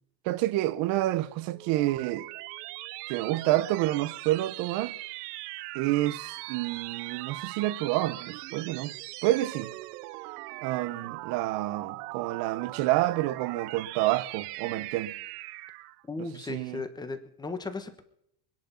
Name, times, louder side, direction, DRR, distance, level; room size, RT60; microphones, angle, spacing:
voice 1, 0.2-2.3 3.1-5.0 5.7-8.9 9.2-9.7 10.6-15.1 16.2-16.8, right 16 dB, 45° right, 1.0 m, -28 dB
sound 1, 1.4-16.0, right 22 dB, 80° right, 0.7 m, -40 dB
voice 2, 16.1-18.0, left 3 dB, 10° left, 1.2 m, -36 dB
23.5 x 10.5 x 5.7 m
cardioid pair, 165°, 47 cm